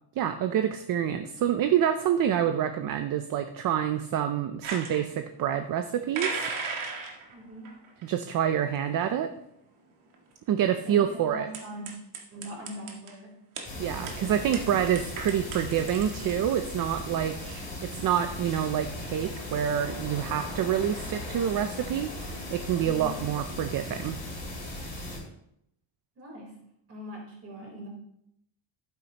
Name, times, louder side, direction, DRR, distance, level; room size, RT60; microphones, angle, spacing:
voice 1, 0.2-6.5 8.0-9.3 10.5-11.5 13.8-24.2, right 9 dB, 45° right, 8 dB, 0.5 m, -27 dB
sound 1, 4.6-5.0 6.1-7.4 7.6-8.0 8.7-8.8 9.0-9.1 10.1-10.2 11.5-13.1 13.6-13.7 14.1-14.2 14.5-16.5, right 4 dB, 85° right, 1.9 m, -36 dB
voice 2, 7.3-7.7 10.8-11.9 12.3-13.4 22.8-23.2 26.2-26.6 26.9-27.9, equal, 30° right, -2 dB, 3.8 m, -41 dB
sound 2, 13.6-25.2, left 1 dB, 15° left, 2.9 m, -38 dB
12.0 x 9.5 x 2.9 m, 0.77 s
cardioid pair, 175°, 48 cm